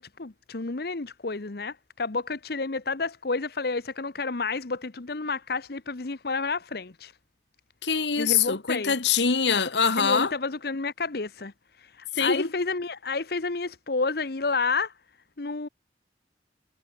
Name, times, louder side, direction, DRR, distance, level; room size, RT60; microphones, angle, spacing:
voice 1, 0.0-7.1 8.2-8.9 10.0-14.9 15.4-15.7, left 4 dB, 60° left, 1.0 m, -30 dB
voice 2, 7.8-10.3 12.1-12.5, left 6 dB, 80° left, 1.6 m, -24 dB
head